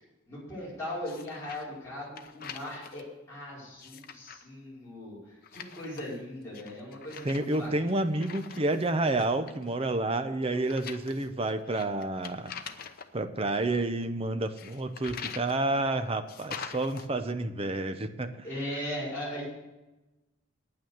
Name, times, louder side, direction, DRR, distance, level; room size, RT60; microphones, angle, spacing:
voice 1, 0.3-7.9 18.4-19.5, left 1 dB, 15° left, -9 dB, 5.2 m, -39 dB
sound 1, 1.0-1.7 2.0-3.0 3.7-4.4 5.4-6.2 6.5-8.9 9.2-9.7 10.5-13.1 14.6-15.6 16.3-17.1, left 7 dB, 50° left, 0.8 m, -44 dB
voice 2, 7.2-12.5 13.1-18.3, right 2 dB, 30° right, 9 dB, 0.8 m, -29 dB
9.5 x 9.2 x 7.1 m, 1.0 s
head